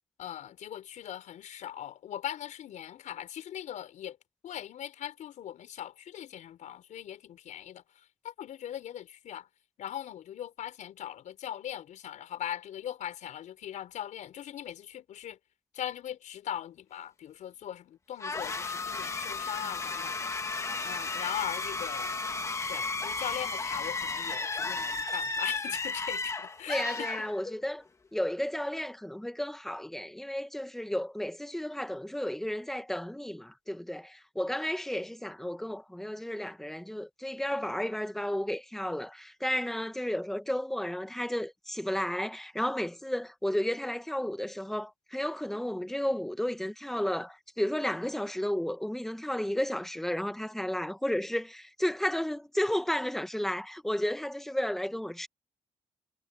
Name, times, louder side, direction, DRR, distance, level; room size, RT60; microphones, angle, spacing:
voice 1, 0.2-4.2 4.4-7.8 8.2-9.5 9.8-15.4 15.7-20.3 20.8-22.1 22.7-27.1, left 11 dB, 75° left, 5.4 m, -40 dB
sound 1, 18.2-27.8, left 3 dB, 25° left, 1.6 m, -34 dB
voice 2, 26.7-27.8 28.1-55.3, left 1 dB, 5° left, 1.3 m, -33 dB
cardioid pair, 145°, 13 cm